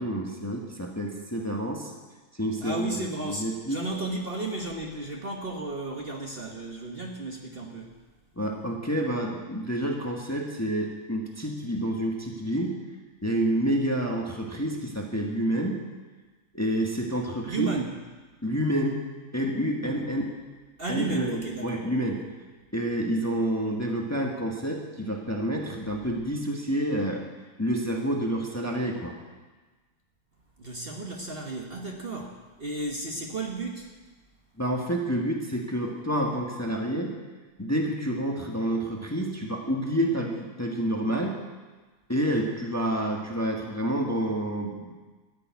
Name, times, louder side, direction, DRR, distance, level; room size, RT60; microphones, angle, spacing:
voice 1, 0.0-1.9 2.4-3.8 8.4-12.7 13.2-15.8 16.5-17.7 18.4-19.0 19.3-20.2 20.9-22.2 22.7-27.2 27.6-29.1 34.6-37.1 37.6-41.4 42.1-44.9, equal, 10° left, 0 dB, 1.3 m, -28 dB
voice 2, 2.6-7.9 17.4-18.0 19.8-20.1 20.8-21.8 30.6-33.9, right 2 dB, 40° right, 1 dB, 1.3 m, -34 dB
13.5 x 6.9 x 9.3 m, 1.3 s
omnidirectional pair, 1.7 m